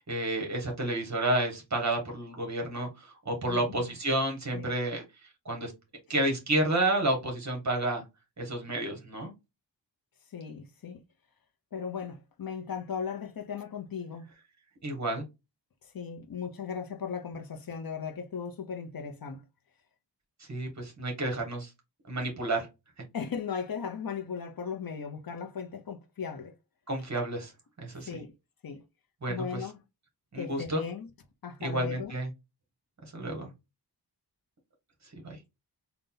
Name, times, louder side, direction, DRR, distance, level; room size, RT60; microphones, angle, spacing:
voice 1, 0.0-5.0 5.4-5.7 6.1-8.0 8.4-9.3 14.8-15.2 20.5-21.7 22.1-22.7 26.9-27.5 27.8-28.1 29.2-29.4 30.3-30.8 31.6-32.3 33.0-33.5 35.2-35.4, right 1 dB, 40° right, 1.5 m, -30 dB
voice 2, 3.5-3.9 4.5-4.7 10.3-11.0 11.7-14.3 15.8-19.4 23.1-26.5 28.0-28.3 28.6-28.8 29.3-29.8 30.3-31.1 31.4-32.2, left 6 dB, 55° left, 0.7 m, -37 dB
3.9 x 2.3 x 3.8 m
wide cardioid pair, 120°, 41 cm